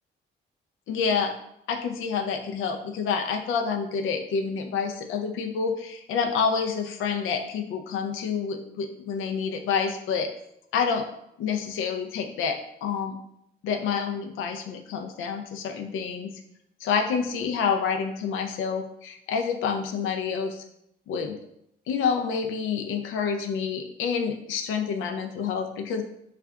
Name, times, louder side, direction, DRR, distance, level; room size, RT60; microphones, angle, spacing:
voice 1, 0.9-1.3 1.7-10.3 10.7-11.0 11.4-13.1 13.6-16.3 16.8-20.6 21.1-21.4 21.9-26.0, left 6 dB, 85° left, 5 dB, 0.5 m, -28 dB
3.2 x 2.4 x 3.5 m, 0.77 s
cardioid pair, 90°, 20 cm